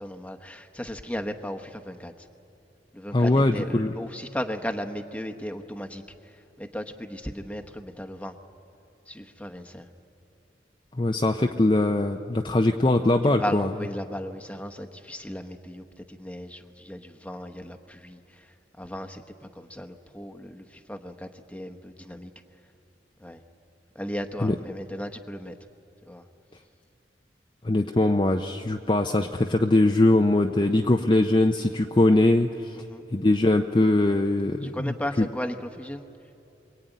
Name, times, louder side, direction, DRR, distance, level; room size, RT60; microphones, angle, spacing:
voice 1, 0.0-2.1 2.9-6.0 6.6-8.3 9.1-9.8 13.2-18.2 18.8-19.2 19.6-22.3 23.2-23.4 23.9-25.5 26.1-26.2 32.9-33.0 34.6-36.0, equal, 10° left, 6 dB, 1.0 m, -36 dB
voice 2, 3.1-3.9 11.0-13.7 24.4-24.6 27.6-32.5 33.1-35.3, left 2 dB, 25° left, 3 dB, 0.6 m, -21 dB
23.5 x 22.5 x 9.1 m, 2.8 s
head